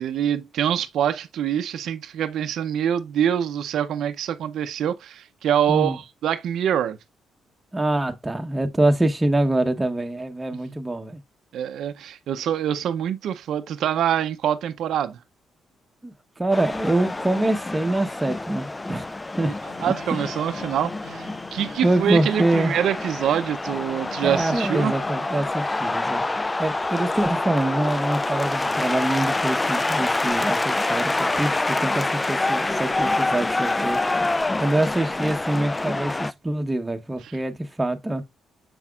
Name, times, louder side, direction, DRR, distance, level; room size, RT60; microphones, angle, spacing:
voice 1, 0.0-7.0 11.5-15.2 19.8-24.9, right 9 dB, 75° right, 0.6 m, -25 dB
voice 2, 7.7-11.2 16.0-19.1 19.4-19.5 21.8-22.7 24.2-26.2 26.6-34.3 34.6-38.2, right 1 dB, 15° right, 1.0 m, -25 dB
sound 1, 16.5-36.3, left 2 dB, 20° left, 0.3 m, -26 dB
sound 2, 19.7-23.3 23.7-25.4, left 4 dB, 70° left, 1.6 m, -43 dB
6.9 x 5.8 x 2.4 m
cardioid pair, 90°, 0 cm